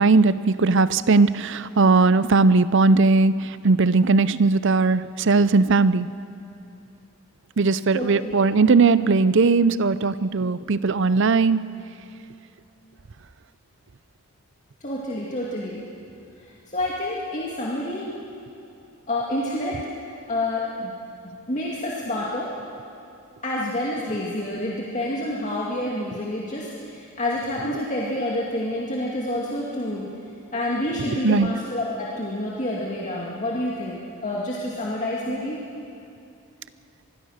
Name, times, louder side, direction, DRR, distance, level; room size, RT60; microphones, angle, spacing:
voice 1, 0.0-6.1 7.6-11.6 31.2-31.5, right 3 dB, 55° right, 15 dB, 0.6 m, -18 dB
voice 2, 7.9-8.4 14.8-15.8 16.4-18.1 19.1-19.8 20.3-20.9 21.2-22.5 23.4-30.1 30.5-35.6, left 1 dB, 35° left, -5 dB, 2.3 m, -28 dB
25.5 x 20.5 x 6.5 m, 2.7 s
head